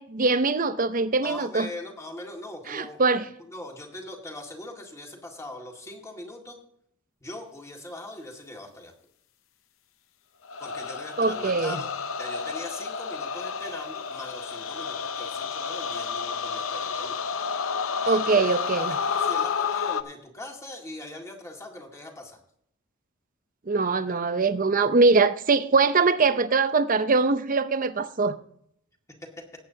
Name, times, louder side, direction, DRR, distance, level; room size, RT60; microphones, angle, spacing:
voice 1, 0.0-1.7 2.7-3.2 11.2-11.8 18.1-19.0 23.7-28.4, right 4 dB, 40° right, 0.7 m, -22 dB
voice 2, 1.2-6.6 7.2-8.9 10.6-11.9 12.2-17.2 18.0-22.4 24.1-24.2 29.2-29.3, left 1 dB, 15° left, 1.9 m, -41 dB
sound 1, 10.5-20.0, left 6 dB, 75° left, 0.7 m, -30 dB
18.5 x 8.5 x 2.8 m
head